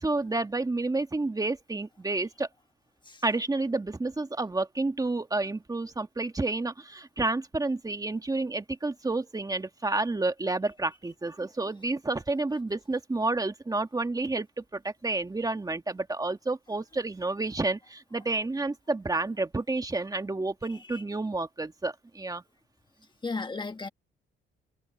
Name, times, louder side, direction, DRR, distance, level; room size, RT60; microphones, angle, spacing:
voice 1, 0.0-2.5 3.2-22.4, right 2 dB, 20° right, 1.9 m, -30 dB
voice 2, 23.2-23.9, left 3 dB, 25° left, 1.5 m, -34 dB
cardioid pair, 90°, 20 cm